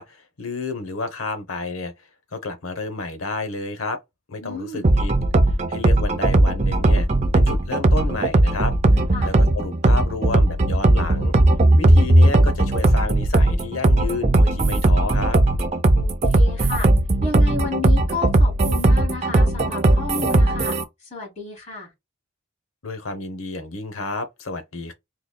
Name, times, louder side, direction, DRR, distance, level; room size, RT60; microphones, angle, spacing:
voice 1, 0.0-1.9 2.3-4.0 4.3-5.1 5.7-7.1 7.3-8.7 9.2-11.3 11.8-15.4 22.8-24.9, left 3 dB, 70° left, 0.9 m, -30 dB
voice 2, 4.4-4.9 9.1-9.3 15.9-16.9 17.2-21.9, left 4 dB, 30° left, 2.3 m, -32 dB
sound 1, 4.8-20.8, right 1 dB, 30° right, 0.5 m, -17 dB
3.9 x 3.1 x 2.2 m
head